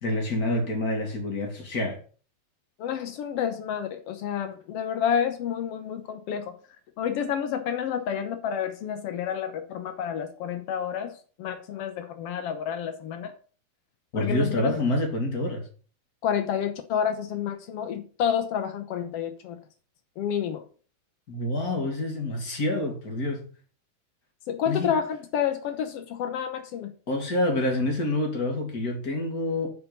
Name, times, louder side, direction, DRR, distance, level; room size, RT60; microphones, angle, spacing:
voice 1, 0.0-2.0 14.1-15.6 21.3-23.5 24.7-25.0 27.1-29.7, left 1 dB, 30° left, 2.2 m, -27 dB
voice 2, 2.8-6.5 7.0-11.1 11.4-13.3 14.1-14.7 16.2-19.6 20.2-20.6 24.5-26.9, left 8 dB, 85° left, 1.3 m, -29 dB
9.4 x 4.7 x 6.8 m
omnidirectional pair, 4.0 m